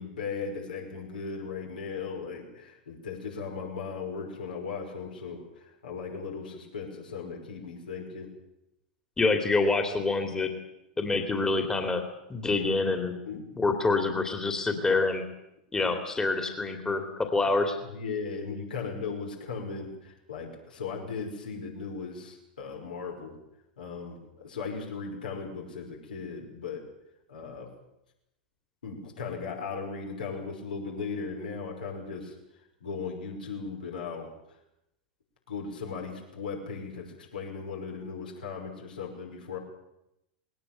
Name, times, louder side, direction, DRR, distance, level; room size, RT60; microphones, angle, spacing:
voice 1, 0.0-8.3 13.3-14.0 15.8-15.9 17.8-23.4 23.8-26.9 27.3-27.7 28.8-32.3 32.8-34.3 35.5-39.6, left 5 dB, 70° left, 0 dB, 5.7 m, -37 dB
voice 2, 9.2-10.5 11.0-12.0 12.3-13.2 13.6-15.2 15.7-17.8, left 3 dB, 15° left, 6 dB, 2.8 m, -26 dB
20.0 x 18.5 x 9.0 m, 0.86 s
figure-of-eight pair, 95°, 5 cm